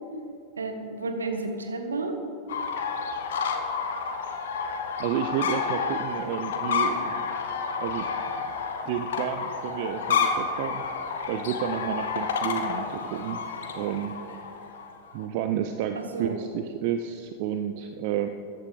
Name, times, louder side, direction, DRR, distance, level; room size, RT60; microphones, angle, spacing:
voice 1, 0.6-2.2 15.9-16.4, right 3 dB, 75° right, 5 dB, 1.5 m, -31 dB
sound 1, 2.5-15.3, left 5 dB, 60° left, 1.3 m, -30 dB
voice 2, 5.0-7.3 7.8-8.1 8.4-8.5 8.9-10.8 11.3-13.4 13.7-14.1 15.1-18.3, right 9 dB, 45° right, 7 dB, 0.6 m, -31 dB
14.5 x 10.5 x 4.9 m, 2.3 s
figure-of-eight pair, 90°, 0 cm